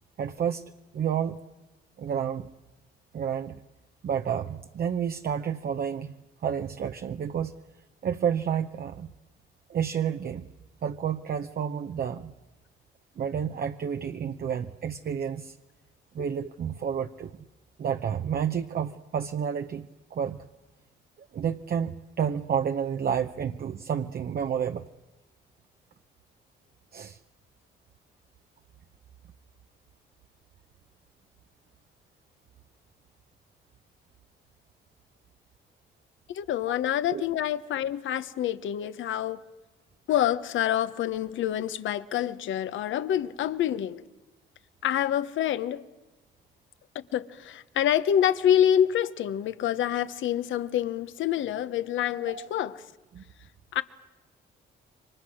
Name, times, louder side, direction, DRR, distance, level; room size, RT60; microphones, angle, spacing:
voice 1, 0.2-1.4 2.0-2.5 3.1-3.6 4.0-6.1 6.4-7.6 8.0-9.1 9.7-10.5 10.8-12.3 13.2-15.6 16.1-17.4 17.8-20.5 21.2-24.9 26.9-27.2 37.1-37.2 52.2-52.5 53.1-53.2, right 8 dB, 50° right, 0.8 m, -30 dB
voice 2, 36.3-39.4 40.1-44.0 44.8-45.8 47.1-52.7 53.7-53.8, left 10 dB, 75° left, 1.1 m, -27 dB
28.5 x 24.0 x 6.4 m
cardioid pair, 90°, 20 cm